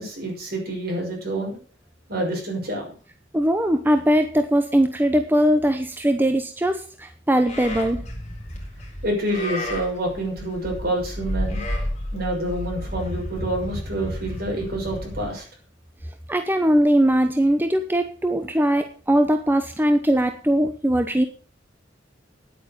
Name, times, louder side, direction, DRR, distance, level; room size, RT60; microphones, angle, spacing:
voice 1, 0.0-1.6 2.1-2.9 9.0-11.6 12.1-15.4, right 1 dB, 55° right, 0 dB, 6.1 m, -27 dB
voice 2, 3.3-8.0 16.3-21.2, equal, 10° right, 7 dB, 0.8 m, -20 dB
Livestock farm animals working animals, 7.5-15.3, equal, 40° left, 3.9 m, -32 dB
10.0 x 8.9 x 6.8 m, 0.40 s
head